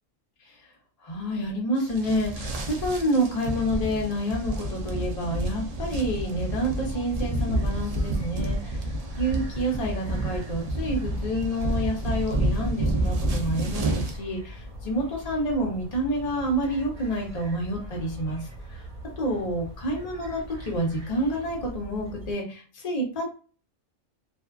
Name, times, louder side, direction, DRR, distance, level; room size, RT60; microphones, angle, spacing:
voice 1, 1.0-8.8 9.2-18.5 19.2-23.3, equal, 35° left, -1 dB, 0.7 m, -28 dB
sound 1, 1.8-14.2, right 1 dB, 80° right, 0.3 m, -29 dB
sound 2, 7.5-22.3, equal, 40° right, 1.1 m, -42 dB
2.5 x 2.3 x 2.3 m, 0.37 s
omnidirectional pair, 1.3 m